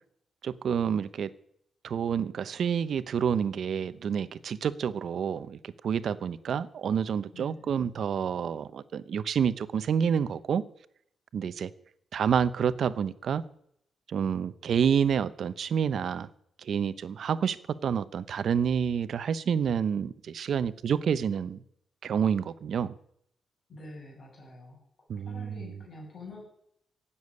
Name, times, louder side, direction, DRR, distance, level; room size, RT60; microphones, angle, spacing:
voice 1, 0.4-1.3 1.8-10.6 11.3-11.7 12.1-13.4 14.1-16.3 16.6-17.6 17.8-21.6 22.0-22.9 25.1-25.7, right 7 dB, 55° right, 15 dB, 0.9 m, -28 dB
voice 2, 7.3-7.8 23.7-24.8 25.2-26.5, left 2 dB, 40° left, -1 dB, 7.7 m, -46 dB
16.5 x 7.2 x 9.7 m, 0.71 s
cardioid pair, 140°, 0 cm